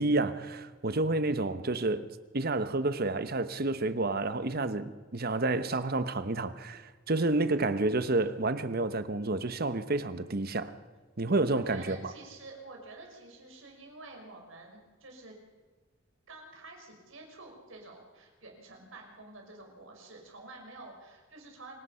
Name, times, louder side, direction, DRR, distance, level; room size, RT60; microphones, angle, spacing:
voice 1, 0.0-2.1 2.3-10.7 11.2-12.1, right 2 dB, 50° right, 1.0 m, -29 dB
voice 2, 11.5-15.4 16.3-21.8, right 2 dB, 75° right, 5.7 m, -49 dB
26.5 x 17.5 x 5.7 m
head